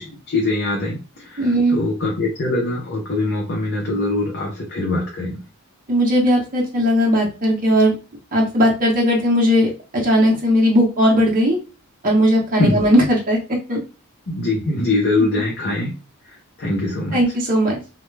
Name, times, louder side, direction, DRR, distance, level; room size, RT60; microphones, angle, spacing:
voice 1, 0.0-5.4 12.6-12.8 14.3-15.9 16.6-17.2, left 2 dB, 50° left, -2 dB, 0.7 m, -22 dB
voice 2, 1.4-1.8 5.9-7.9 8.3-9.7 10.0-11.6 12.0-13.4 13.7-13.8 17.1-17.8, equal, 40° right, -2 dB, 0.7 m, -17 dB
2.3 x 2.1 x 3.1 m, 0.33 s
head